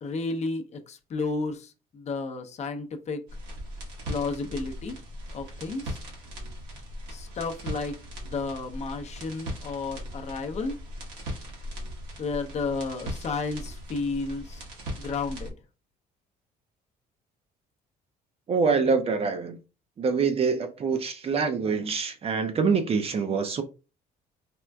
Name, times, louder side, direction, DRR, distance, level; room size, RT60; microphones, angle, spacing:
voice 1, 0.0-3.2 4.1-5.0 5.3-6.0 7.1-8.0 8.2-10.8 12.2-14.6 15.0-15.5, left 3 dB, 40° left, 0.6 m, -32 dB
sound 1, 3.3-15.5, equal, 85° right, 1.2 m, -39 dB
voice 2, 18.5-19.6 20.0-23.6, right 5 dB, 35° right, 0.5 m, -25 dB
4.3 x 2.4 x 2.2 m
cardioid pair, 110°, 17 cm